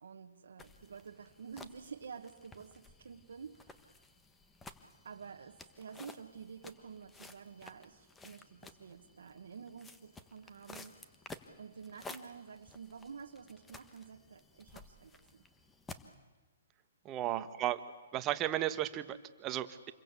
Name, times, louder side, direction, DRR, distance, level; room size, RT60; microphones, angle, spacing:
voice 1, 0.0-4.0 5.0-11.0 11.6-15.4 17.2-17.6, right 6 dB, 80° right, 2 dB, 1.4 m, -50 dB
sound 1, 0.6-16.1, left 3 dB, 10° left, 1.3 m, -54 dB
voice 2, 17.0-17.8 18.1-19.9, right 13 dB, 25° right, 10 dB, 1.3 m, -34 dB
27.5 x 22.5 x 8.4 m, 1.2 s
hypercardioid pair, 150°, 0 cm